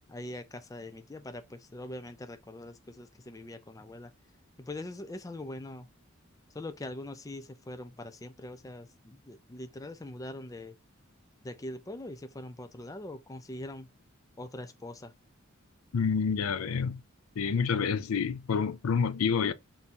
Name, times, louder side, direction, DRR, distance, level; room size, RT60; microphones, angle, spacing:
voice 1, 0.1-4.1 4.6-5.9 6.5-10.7 11.4-13.9 14.4-15.1, left 1 dB, 15° left, 0.4 m, -42 dB
voice 2, 15.9-17.0 17.4-19.5, left 6 dB, 90° left, 0.5 m, -28 dB
5.3 x 2.7 x 2.9 m
head